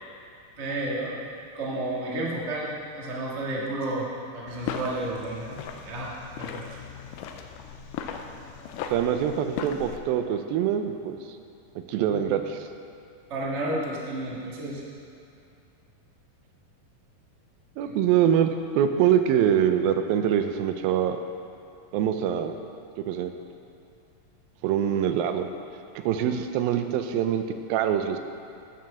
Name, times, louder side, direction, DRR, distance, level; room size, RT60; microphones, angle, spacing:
voice 1, 0.6-1.1 1.5-2.7 2.9-4.1 4.3-5.6 5.9-6.7 12.1-12.3 13.3-14.8 17.8-17.9, right 1 dB, 35° right, -5 dB, 1.1 m, -31 dB
sound 1, 4.5-10.0, left 7 dB, 80° left, 2.1 m, -37 dB
voice 2, 8.9-11.2 11.9-12.6 17.8-21.2 21.9-22.6 23.1-23.3 24.6-25.5 26.0-27.4 27.7-28.2, right 9 dB, 90° right, 7 dB, 2.5 m, -24 dB
11.5 x 6.2 x 7.1 m, 2.5 s
omnidirectional pair, 4.1 m